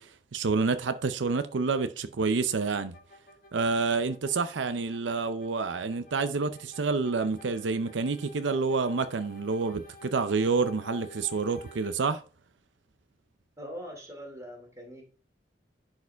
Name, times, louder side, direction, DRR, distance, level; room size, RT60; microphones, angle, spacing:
voice 1, 0.0-3.0 3.5-12.2, right 4 dB, 85° right, 0.6 m, -28 dB
sound 1, 2.9-11.9, left 2 dB, 50° left, 1.2 m, -51 dB
voice 2, 13.6-15.0, equal, 20° right, 2.7 m, -42 dB
10.5 x 4.8 x 3.4 m
head